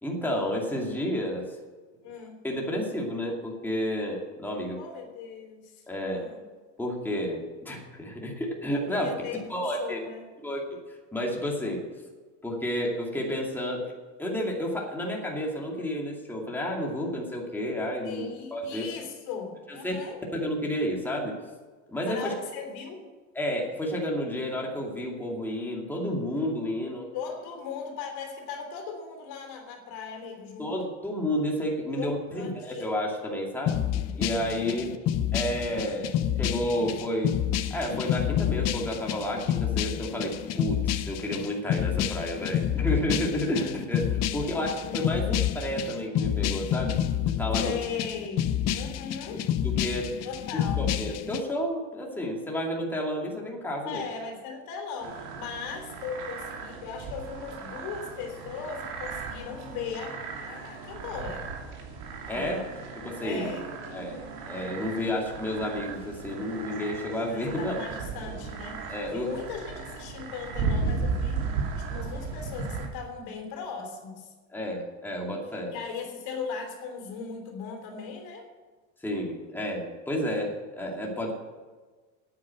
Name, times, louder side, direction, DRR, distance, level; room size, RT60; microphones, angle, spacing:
voice 1, 0.0-1.6 2.4-4.8 5.9-6.2 6.8-9.1 9.5-10.0 10.4-11.8 12.4-13.9 14.2-18.8 19.8-19.9 20.3-21.3 21.9-22.3 23.3-27.1 30.6-33.8 34.1-34.9 35.3-37.4 37.7-47.7 49.6-50.1 50.5-54.0 62.3-62.6 63.0-63.5 63.9-67.7 68.9-69.3 74.5-75.7 79.0-81.3, equal, 5° left, -2 dB, 2.4 m, -31 dB
voice 2, 2.0-2.4 4.8-6.4 8.8-10.2 18.0-20.2 22.0-23.1 27.1-30.8 32.0-32.8 34.5-34.8 43.4-43.8 44.2-44.9 47.6-49.4 50.2-50.9 53.8-61.5 62.3-62.7 63.2-63.8 67.3-71.4 71.8-74.3 75.7-78.5, left 6 dB, 65° left, 3 dB, 3.3 m, -38 dB
sound 1, 33.7-51.4, left 10 dB, 40° left, 0.7 m, -29 dB
sound 2, 55.0-72.9, right 4 dB, 75° right, 2.9 m, -36 dB
9.3 x 9.0 x 7.6 m, 1.4 s
supercardioid pair, 120°, 40 cm